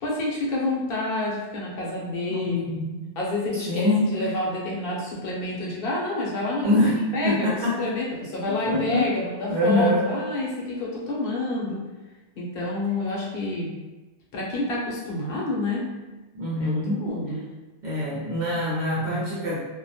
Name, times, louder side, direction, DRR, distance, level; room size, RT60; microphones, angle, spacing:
voice 1, 0.0-2.8 3.2-11.8 12.4-13.7 14.3-15.8 16.6-17.4, left 2 dB, 60° left, -4 dB, 0.8 m, -28 dB
voice 2, 2.3-3.0 3.7-4.3 6.6-7.9 8.5-9.1 9.5-10.1 16.3-17.2 17.8-19.6, left 1 dB, 55° right, -8 dB, 0.6 m, -24 dB
2.2 x 2.1 x 2.6 m, 1.2 s
omnidirectional pair, 1.2 m